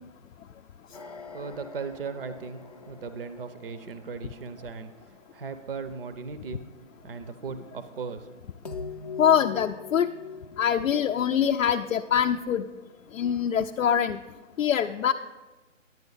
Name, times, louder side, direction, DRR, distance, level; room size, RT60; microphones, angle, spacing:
sound 1, 0.9-5.2 8.7-12.5, left 5 dB, 30° left, 0.5 m, -43 dB
voice 1, 0.9-6.6 7.0-8.4, right 5 dB, 45° right, 11 dB, 0.6 m, -38 dB
voice 2, 9.2-10.1 10.6-12.6 13.1-14.2 14.6-15.1, left 8 dB, 90° left, 5 dB, 0.5 m, -24 dB
10.5 x 8.9 x 3.9 m, 1.2 s
hypercardioid pair, 165°, 39 cm